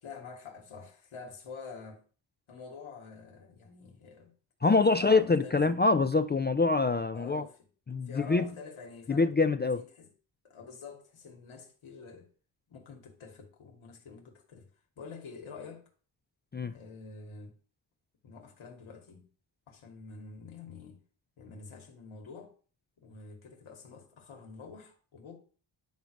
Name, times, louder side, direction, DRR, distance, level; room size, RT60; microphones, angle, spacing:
voice 1, 0.0-2.0 2.5-4.3 4.9-5.6 7.1-7.6 8.1-9.3 9.7-10.1 10.4-12.3 12.7-14.7 15.0-15.9 16.7-17.5 18.2-19.3 19.7-21.0 21.4-22.5 23.0-25.4, left 4 dB, 85° left, 2.7 m, -47 dB
voice 2, 4.6-7.4 7.9-8.5 9.1-9.8 16.5-16.7, left 3 dB, 25° left, 0.4 m, -25 dB
10.5 x 5.2 x 6.4 m
wide cardioid pair, 105°, 47 cm